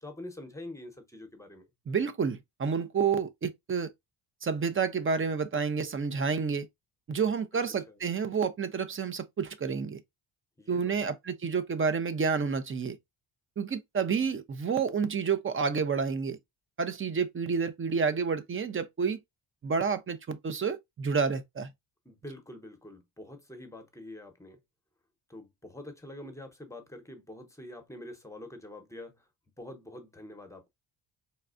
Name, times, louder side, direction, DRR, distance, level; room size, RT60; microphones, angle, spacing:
voice 1, 0.0-1.7 7.9-8.0 10.6-11.1 22.0-24.6 25.3-29.3 29.6-30.7, left 1 dB, 5° left, 0.9 m, -45 dB
voice 2, 1.9-3.9 4.4-6.7 7.1-10.0 10.7-13.0 13.6-16.4 16.8-19.2 19.6-21.7, right 5 dB, 30° right, 0.5 m, -29 dB
4.2 x 2.3 x 2.4 m
cardioid pair, 90°, 45 cm